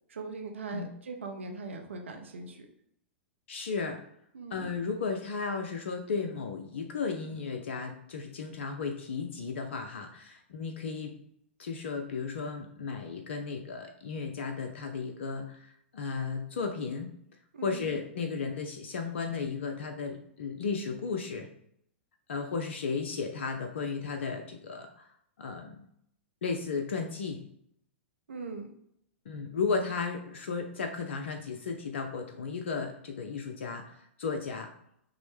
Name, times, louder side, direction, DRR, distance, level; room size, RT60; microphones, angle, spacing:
voice 1, 0.1-2.7 4.3-4.6 17.5-17.8 28.3-28.7, right 3 dB, 80° right, 3 dB, 0.7 m, -40 dB
voice 2, 3.5-4.0 4.5-11.1 11.6-17.1 17.6-21.5 22.3-25.1 25.4-25.8 26.4-27.5 29.3-34.7, left 5 dB, 70° left, 4 dB, 0.5 m, -34 dB
5.8 x 2.1 x 3.3 m, 0.72 s
hypercardioid pair, 105°, 7 cm